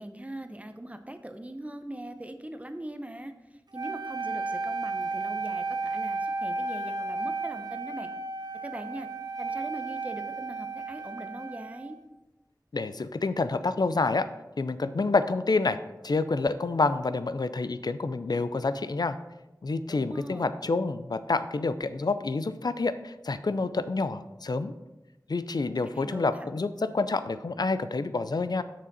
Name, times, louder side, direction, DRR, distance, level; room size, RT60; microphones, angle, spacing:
voice 1, 0.0-8.1 8.6-9.1 9.4-12.0 19.9-20.5 25.8-26.5, right 1 dB, 20° right, 8 dB, 0.7 m, -41 dB
Wind instrument woodwind instrument, 3.7-12.0, right 3 dB, 75° right, 0.6 m, -33 dB
voice 2, 12.7-14.3 14.6-15.8 16.0-19.2 19.6-24.7 25.3-28.6, left 3 dB, 75° left, 12 dB, 0.4 m, -28 dB
6.9 x 6.0 x 4.1 m, 1.0 s
wide cardioid pair, 45°, 7 cm